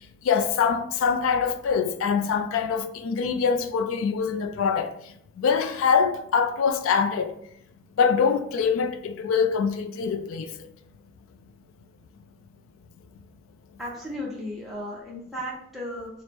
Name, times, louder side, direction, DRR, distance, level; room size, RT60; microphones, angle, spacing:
voice 1, 0.2-4.9 5.4-7.3 8.0-10.7, left 6 dB, 85° left, 0.3 m, -24 dB
voice 2, 13.8-16.1, equal, ahead, 0.6 m, -35 dB
4.4 x 2.0 x 3.3 m
head